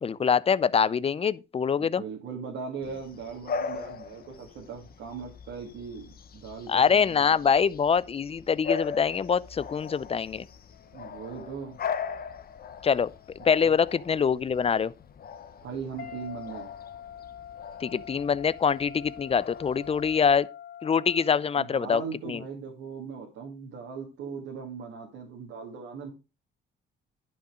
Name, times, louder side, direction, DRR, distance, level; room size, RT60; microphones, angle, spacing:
voice 1, 0.0-2.0 6.7-10.5 12.8-13.1 13.5-14.9 17.8-20.5 20.8-22.0 22.3-22.4, left 6 dB, 30° left, 0.5 m, -24 dB
voice 2, 1.7-7.4 10.9-11.8 13.4-13.7 15.6-16.7 21.5-26.1, right 5 dB, 90° right, 2.2 m, -39 dB
Bark / Bird vocalization bird call bird song, 2.8-20.4, left 6 dB, 50° left, 1.0 m, -40 dB
sound 1, 10.7-13.9 16.0-22.1, left 9 dB, 70° left, 2.4 m, -46 dB
10.5 x 5.6 x 5.0 m
cardioid pair, 90°, 20 cm